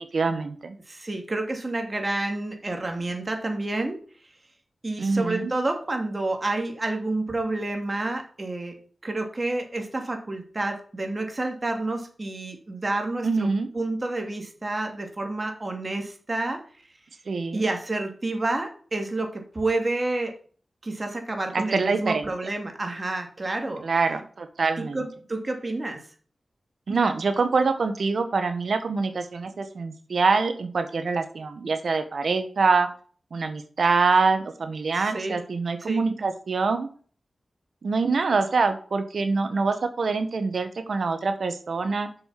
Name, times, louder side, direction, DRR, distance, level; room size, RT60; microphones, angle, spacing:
voice 1, 0.1-0.8 5.0-5.5 13.2-13.7 17.3-17.6 21.5-22.3 23.8-25.1 26.9-32.9 33.3-36.9 37.8-42.1, right 4 dB, 75° right, 8 dB, 1.2 m, -25 dB
voice 2, 0.9-4.0 4.8-8.8 9.0-16.6 17.5-20.3 20.8-23.8 24.8-26.0 34.9-35.4 35.8-36.0, right 2 dB, 40° right, 4 dB, 2.6 m, -29 dB
6.7 x 6.7 x 5.7 m, 0.43 s
cardioid pair, 45°, 0 cm